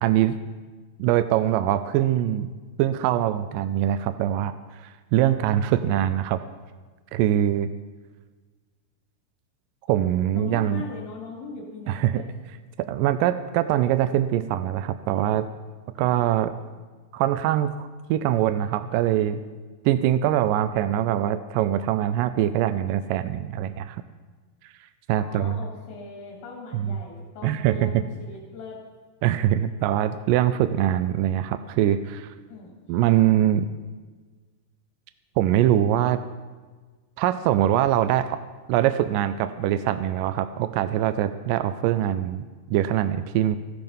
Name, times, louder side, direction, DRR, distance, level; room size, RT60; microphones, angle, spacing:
voice 1, 0.0-0.4 1.0-2.5 2.8-6.4 7.1-7.7 9.9-10.8 11.9-12.2 12.9-15.5 16.0-16.5 17.1-19.4 19.9-24.0 24.6-24.7 25.1-25.6 26.7-27.0 27.4-27.9 29.2-32.3 32.9-33.7 35.4-36.2 37.2-38.4 38.7-43.6, right 12 dB, 80° right, 11 dB, 2.1 m, -23 dB
voice 2, 10.3-12.3 16.0-16.2 25.1-28.8 32.5-32.8, left 3 dB, 85° left, -3 dB, 3.9 m, -40 dB
15.0 x 12.5 x 5.4 m, 1.4 s
omnidirectional pair, 4.1 m